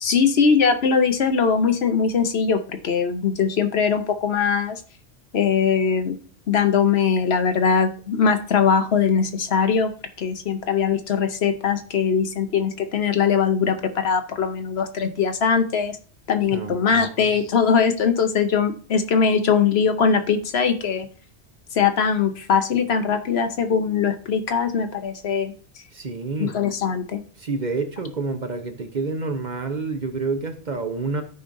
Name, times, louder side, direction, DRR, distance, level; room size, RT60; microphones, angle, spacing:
voice 1, 0.0-4.8 5.3-6.2 6.5-9.9 10.2-16.0 16.3-21.1 21.7-25.5 26.4-27.2, left 6 dB, 65° left, 1.0 m, -21 dB
voice 2, 16.5-17.2 25.9-26.6 27.4-31.2, right 3 dB, 45° right, 0.9 m, -28 dB
13.0 x 5.0 x 2.6 m
omnidirectional pair, 1.2 m